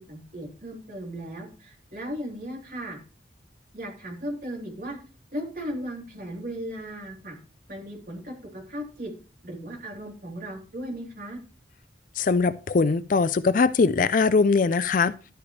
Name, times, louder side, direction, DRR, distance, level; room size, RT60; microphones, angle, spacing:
voice 1, 0.0-3.0 3.7-5.0 5.3-7.4 7.7-9.1 9.4-11.4, equal, 50° right, 3.3 m, -36 dB
voice 2, 12.2-15.3, left 4 dB, 45° left, 0.4 m, -21 dB
12.0 x 8.8 x 3.2 m
head